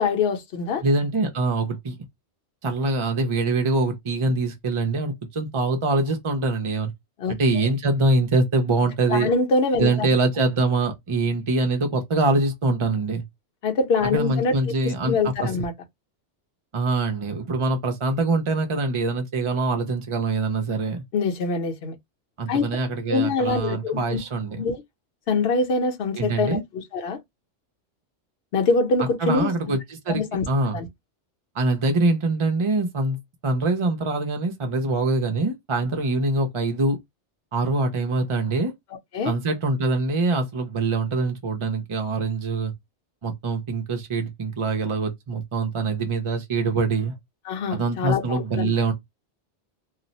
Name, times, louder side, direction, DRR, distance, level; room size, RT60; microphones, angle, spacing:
voice 1, 0.0-0.8 7.2-7.7 9.1-10.1 13.6-14.8 15.0-15.7 21.1-22.0 22.5-22.6 23.1-24.2 24.6-24.8 25.3-27.2 28.5-29.8 30.1-30.5 30.7-30.9 39.1-39.3 47.5-48.7, left 4 dB, 60° left, 0.9 m, -24 dB
voice 2, 0.8-1.9 2.6-6.9 7.3-9.3 9.8-13.2 14.1-15.5 16.7-21.0 22.4-24.6 26.1-26.6 29.2-30.8 31.5-33.2 33.4-37.0 37.5-38.7 39.2-42.7 43.2-47.1 47.7-48.9, right 3 dB, 40° right, 0.4 m, -24 dB
2.4 x 2.1 x 3.9 m
omnidirectional pair, 1.2 m